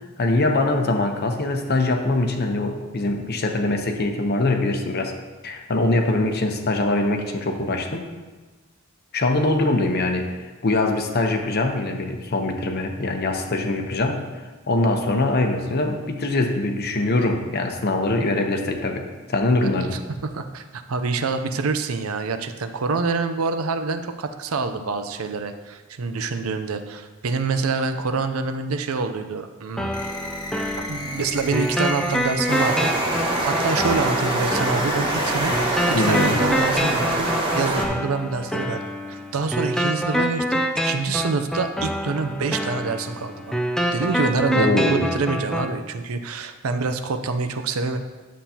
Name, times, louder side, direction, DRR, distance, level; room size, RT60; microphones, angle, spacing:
voice 1, 0.2-5.2 5.4-8.0 9.1-14.3 14.7-19.9 35.9-36.4 44.5-45.2, left 2 dB, 50° left, 5 dB, 0.8 m, -23 dB
voice 2, 20.2-29.9 30.8-32.9 33.2-37.3 37.5-38.8 39.1-43.6 43.9-48.0, right 4 dB, 90° right, 8 dB, 0.6 m, -26 dB
sound 1, 29.8-45.8, equal, 5° left, 0.4 m, -27 dB
sound 2, 29.9-36.8, left 1 dB, 20° left, 1.0 m, -34 dB
sound 3, 32.5-37.8, right 2 dB, 25° right, 1.0 m, -24 dB
10.0 x 7.3 x 2.8 m, 1.3 s
head